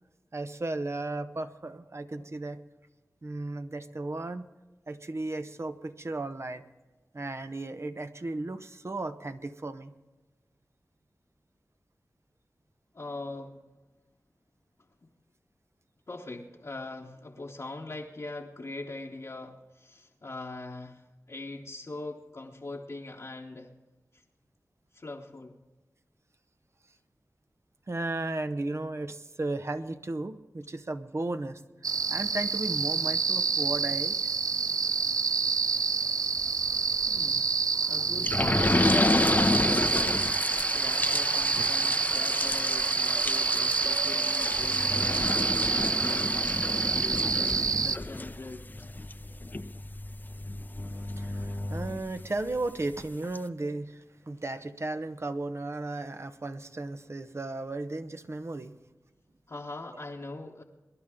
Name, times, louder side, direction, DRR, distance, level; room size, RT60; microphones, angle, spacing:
voice 1, 0.3-2.6 3.2-4.5 4.9-6.6 7.1-9.9 27.9-31.6 32.1-34.3 51.2-58.7, right 2 dB, 45° right, 10 dB, 0.9 m, -35 dB
voice 2, 12.9-13.6 15.0-15.1 16.1-23.7 24.1-24.2 24.9-25.6 37.1-37.6 37.9-40.3 40.7-49.0 59.5-60.6, left 2 dB, 55° left, -3 dB, 1.2 m, -42 dB
sound 1, 31.8-48.0, right 5 dB, 75° right, 0.4 m, -28 dB
sound 2, 38.2-52.6 53.0-53.1 53.3-53.4, left 2 dB, 30° left, 0.7 m, -30 dB
22.0 x 10.5 x 3.7 m, 1.2 s
cardioid pair, 40°, 6 cm